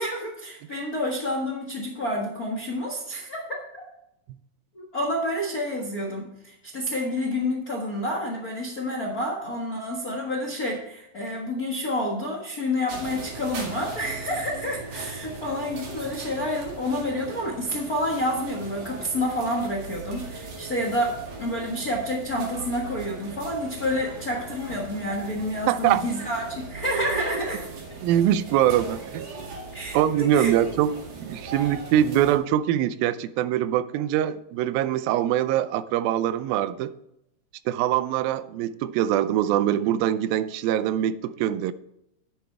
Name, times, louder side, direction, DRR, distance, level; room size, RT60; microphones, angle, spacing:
voice 1, 0.0-3.4 3.7-3.8 4.7-27.6 29.7-30.5, left 1 dB, 50° left, 0 dB, 1.1 m, -29 dB
sound 1, 12.9-32.4, right 3 dB, 60° right, 3.5 m, -39 dB
voice 2, 25.7-26.1 28.0-29.3 29.9-36.9 37.7-41.7, right 11 dB, 90° right, 14 dB, 2.4 m, -23 dB
10.5 x 9.3 x 3.3 m, 0.82 s
omnidirectional pair, 4.1 m